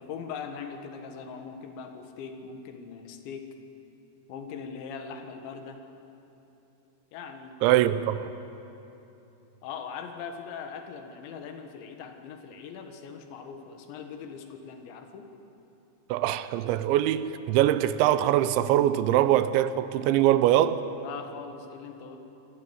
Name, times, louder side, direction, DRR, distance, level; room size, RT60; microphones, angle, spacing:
voice 1, 0.0-3.5 4.3-5.8 7.1-7.6 9.6-15.3 21.0-22.2, left 6 dB, 80° left, 3.8 m, -41 dB
voice 2, 7.6-8.3 16.1-20.8, right 12 dB, 85° right, 3.1 m, -23 dB
26.5 x 12.5 x 9.5 m
omnidirectional pair, 5.2 m